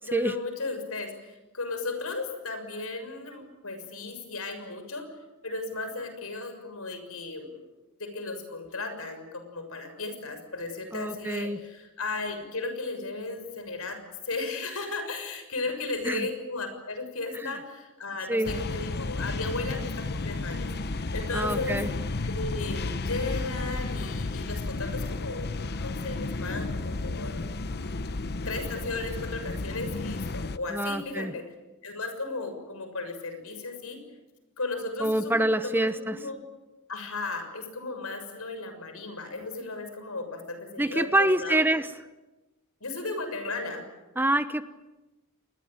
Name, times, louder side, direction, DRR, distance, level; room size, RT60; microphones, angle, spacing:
voice 1, 0.0-5.1 5.4-7.7 8.0-14.0 14.2-20.7 21.1-21.8 22.2-27.4 28.4-31.4 31.8-34.0 34.6-35.3 35.6-36.4 36.9-41.6 42.8-43.8, left 3 dB, 75° left, 7 dB, 6.6 m, -35 dB
voice 2, 10.9-11.6 16.0-16.3 17.4-17.5 18.3-18.5 21.3-21.9 30.7-31.3 35.0-36.1 40.8-41.9 44.2-44.6, right 1 dB, 10° right, 11 dB, 1.0 m, -26 dB
sound 1, 18.4-30.6, left 2 dB, 50° left, 0.9 m, -32 dB
28.0 x 21.5 x 9.0 m, 1.1 s
head